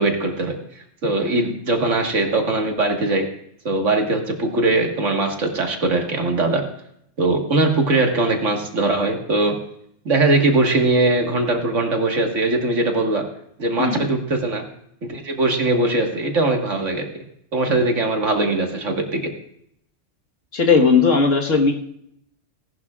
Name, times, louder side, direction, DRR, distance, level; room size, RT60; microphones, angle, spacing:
voice 1, 0.0-3.3 3.7-6.6 7.2-9.6 10.1-13.2 13.6-14.6 15.0-17.1 17.5-19.3, right 2 dB, 75° right, 3 dB, 2.0 m, -21 dB
voice 2, 20.5-21.7, left 4 dB, 80° left, 1 dB, 1.8 m, -17 dB
18.0 x 11.5 x 2.4 m, 0.72 s
omnidirectional pair, 1.3 m